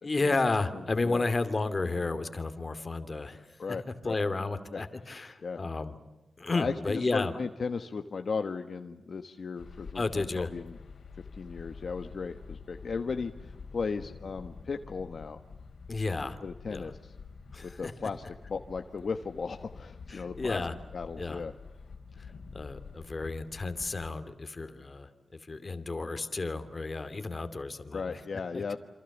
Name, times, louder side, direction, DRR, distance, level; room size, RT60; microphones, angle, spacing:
voice 1, 0.0-3.5 4.0-5.9 6.4-7.3 9.9-10.5 15.9-16.4 16.7-16.9 17.5-17.9 20.1-20.7 21.2-21.4 22.2-22.3 22.5-28.2 28.5-28.6, left 3 dB, 30° left, 10 dB, 2.6 m, -32 dB
voice 2, 3.6-4.2 4.7-4.8 5.4-5.6 6.5-10.8 11.4-15.4 16.4-17.1 17.6-20.6 20.9-21.5 27.9-28.8, left 5 dB, 55° left, 7 dB, 1.4 m, -36 dB
sound 1, 9.6-24.1, left 5 dB, 70° left, 3.4 m, -48 dB
27.5 x 27.5 x 7.3 m, 1.0 s
wide cardioid pair, 125°, 0 cm